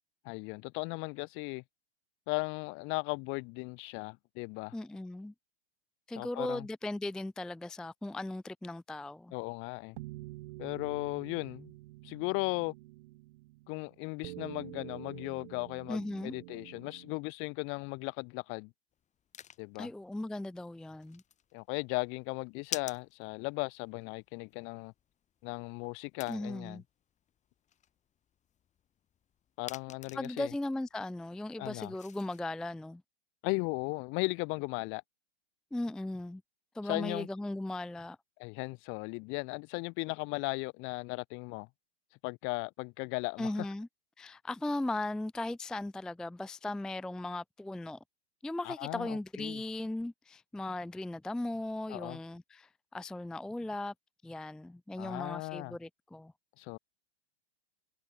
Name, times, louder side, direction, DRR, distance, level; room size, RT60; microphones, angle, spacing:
voice 1, 0.2-1.6 2.3-4.7 6.2-6.7 9.3-10.0 10.6-11.7 12.0-12.7 13.7-18.7 19.6-19.9 21.5-24.9 25.4-26.8 29.6-30.5 31.6-31.9 33.4-35.0 36.8-37.3 38.4-41.7 42.2-43.5 48.6-49.6 51.9-52.2 55.0-55.8 56.6-56.8, left 29 dB, 40° left, 1.2 m, -37 dB
voice 2, 4.7-5.3 6.1-9.3 15.9-16.3 19.8-21.2 26.3-26.8 30.1-33.0 35.7-36.4 36.7-38.2 43.4-43.9 44.2-48.0 48.4-53.9 54.2-56.3, left 2 dB, ahead, 0.5 m, -37 dB
sound 1, 10.0-17.1, right 20 dB, 55° right, 2.6 m, -48 dB
sound 2, 18.9-32.4, left 9 dB, 20° left, 3.1 m, -50 dB
hypercardioid pair, 125°, 31 cm